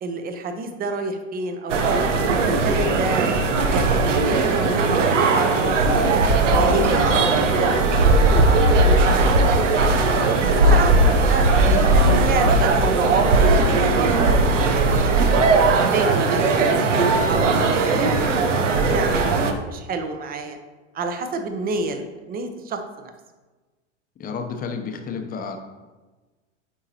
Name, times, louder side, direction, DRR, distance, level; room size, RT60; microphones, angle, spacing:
voice 1, 0.0-3.3 3.7-6.2 6.7-8.4 8.8-9.4 10.1-16.8 17.3-18.2 18.8-20.6 20.9-23.1, right 3 dB, 25° right, 7 dB, 0.7 m, -29 dB
sound 1, 1.7-19.5, right 3 dB, 85° right, 0.7 m, -18 dB
voice 2, 10.6-11.0 17.9-18.1 24.2-25.6, left 5 dB, 25° left, 4 dB, 0.7 m, -31 dB
9.2 x 3.8 x 2.9 m, 1.2 s
hypercardioid pair, 100°, 36 cm